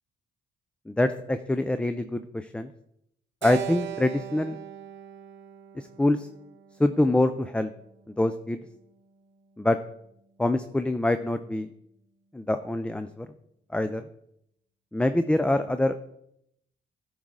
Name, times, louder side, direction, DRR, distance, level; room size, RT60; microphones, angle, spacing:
voice 1, 0.9-2.7 3.4-4.6 5.7-6.3 6.8-7.7 8.2-8.6 9.6-9.8 10.4-11.7 12.3-13.3 13.7-14.0 14.9-15.9, left 1 dB, 5° left, 9 dB, 0.3 m, -25 dB
Keyboard (musical), 3.4-7.8, right 12 dB, 65° right, 0.7 m, -39 dB
10.5 x 4.7 x 3.8 m, 0.77 s
cardioid pair, 90°, 20 cm